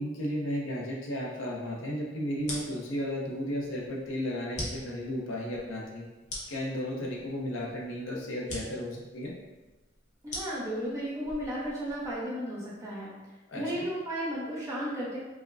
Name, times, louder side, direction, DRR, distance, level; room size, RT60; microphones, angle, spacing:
voice 1, 0.0-6.0 6.5-9.3 13.5-13.8, equal, 80° left, -2 dB, 0.7 m, -34 dB
sound 1, 2.4-12.2, left 1 dB, 40° left, 0.8 m, -43 dB
voice 2, 10.2-13.1 13.5-15.2, equal, 15° right, -7 dB, 0.7 m, -34 dB
4.8 x 2.1 x 2.5 m, 1.1 s
head